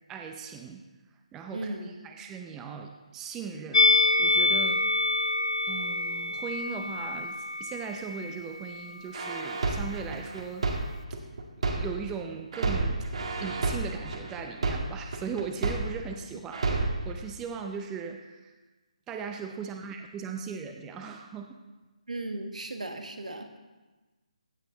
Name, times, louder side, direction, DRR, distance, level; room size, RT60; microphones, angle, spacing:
voice 1, 0.1-0.8 1.3-4.9 5.3-5.4 5.7-10.8 11.1-11.2 11.8-13.1 13.4-18.5 19.1-21.6, right 6 dB, 10° right, 4 dB, 0.6 m, -38 dB
voice 2, 1.5-1.9 22.1-23.6, right 2 dB, 80° right, 6 dB, 1.6 m, -36 dB
Musical instrument, 3.7-9.0 9.2-9.4, left 3 dB, 60° left, 0.7 m, -26 dB
sound 1, 9.1-12.1 12.5-16.1 16.5-17.1, right 3 dB, 55° right, 1.9 m, -30 dB
15.5 x 8.1 x 3.9 m, 1.2 s
figure-of-eight pair, 155°, 4 cm